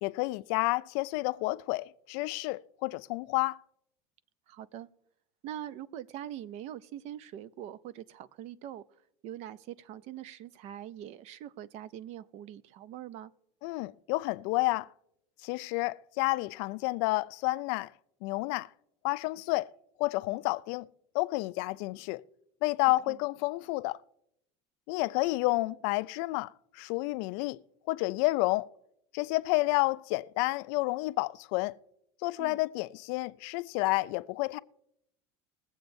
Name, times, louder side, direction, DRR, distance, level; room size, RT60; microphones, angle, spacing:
voice 1, 0.0-3.6 13.6-14.9 15.4-17.9 18.2-18.7 19.0-19.7 20.0-20.9 21.1-22.2 22.6-24.0 24.9-27.6 27.9-28.7 29.1-31.7 32.2-34.6, left 22 dB, 65° left, 0.4 m, -30 dB
voice 2, 4.5-4.9 5.4-8.8 9.2-13.3 23.1-23.2 32.4-32.6, right 11 dB, 50° right, 0.5 m, -43 dB
21.5 x 7.8 x 2.6 m
supercardioid pair, 130°, 14 cm